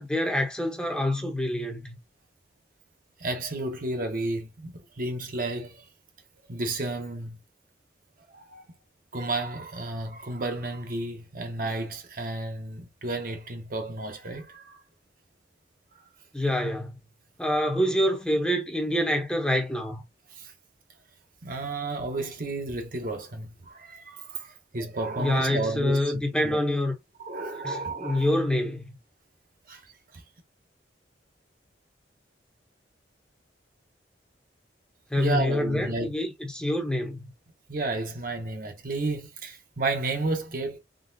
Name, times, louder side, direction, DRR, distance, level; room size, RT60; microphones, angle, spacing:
voice 1, 0.0-2.0 16.3-17.0 17.4-20.0 25.2-27.0 27.6-28.9 35.1-37.3, left 1 dB, 5° left, 0.8 m, -26 dB
voice 2, 3.2-5.8 6.5-7.4 8.3-8.6 9.1-14.8 20.3-20.5 21.4-26.0 26.4-26.6 27.2-28.3 29.7-29.8 35.2-36.1 37.7-40.8, right 2 dB, 50° right, 0.9 m, -32 dB
3.9 x 3.5 x 2.6 m
head